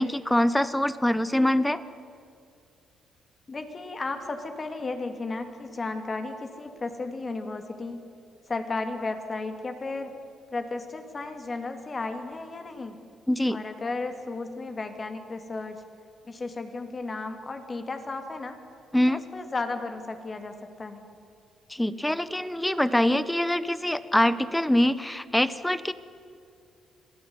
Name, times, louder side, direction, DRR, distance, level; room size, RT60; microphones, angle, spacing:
voice 1, 0.0-1.8 13.3-13.6 18.9-19.2 21.7-25.9, left 1 dB, 5° left, 15 dB, 1.0 m, -24 dB
voice 2, 3.5-8.1 8.5-10.1 10.5-13.0 13.5-15.8 16.2-18.6 19.1-21.1, left 3 dB, 30° left, 6 dB, 2.7 m, -34 dB
26.0 x 16.0 x 9.8 m, 2.4 s
cardioid pair, 90°, 0 cm